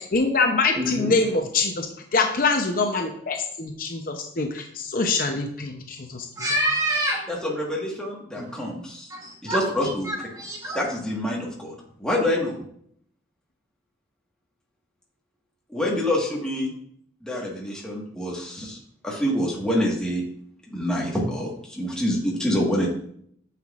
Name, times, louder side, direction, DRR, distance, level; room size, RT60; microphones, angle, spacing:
voice 1, 0.1-1.9 2.1-4.7 4.9-6.5, left 3 dB, 45° left, 4 dB, 0.7 m, -24 dB
voice 2, 0.7-1.1 6.4-7.2 8.4-8.5 9.1-9.6 10.1-10.8, right 1 dB, 20° right, -1 dB, 0.9 m, -26 dB
voice 3, 7.3-9.1 9.4-10.1 10.7-12.5 15.7-16.7 17.2-18.8 19.0-20.2 20.7-22.9, left 1 dB, 5° left, -4 dB, 1.5 m, -26 dB
9.1 x 5.8 x 2.4 m, 0.67 s
head